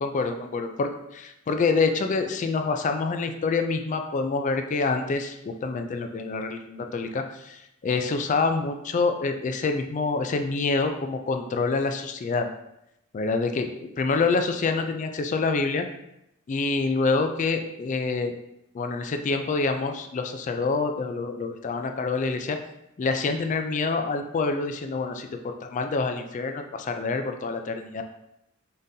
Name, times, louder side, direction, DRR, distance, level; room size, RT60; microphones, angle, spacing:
voice 1, 0.0-12.5 13.1-15.8 16.5-18.3 18.7-22.6 23.0-28.0, left 4 dB, 40° left, 6 dB, 0.3 m, -26 dB
3.8 x 3.7 x 2.7 m, 0.83 s
head